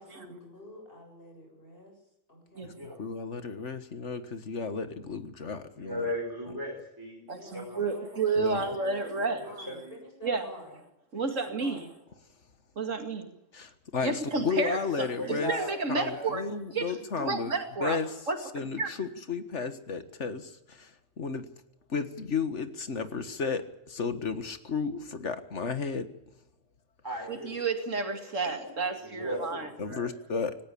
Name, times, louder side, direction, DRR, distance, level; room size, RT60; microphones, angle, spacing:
voice 1, 0.0-1.9 2.3-2.8 7.3-8.6 8.9-10.8 11.1-11.9 28.5-28.7, left 1 dB, 45° left, 2 dB, 7.6 m, -48 dB
voice 2, 3.0-6.1 8.4-8.6 13.5-15.5 15.9-17.5 17.8-18.1 18.5-20.9 21.2-21.5 21.9-26.1 29.8-30.6, left 5 dB, 65° left, 10 dB, 1.9 m, -33 dB
voice 3, 5.7-7.8 8.6-8.9 9.2-10.0 15.1-16.3 27.0-27.6 28.1-28.2 29.0-30.1, equal, 15° right, 0 dB, 4.4 m, -37 dB
voice 4, 7.3-9.4 10.2-10.5 11.1-11.8 12.8-13.3 14.0-16.5 16.7-18.0 18.3-18.9 27.3-29.7, right 4 dB, 75° right, 6 dB, 2.7 m, -31 dB
18.5 x 18.0 x 8.6 m, 0.86 s
omnidirectional pair, 1.3 m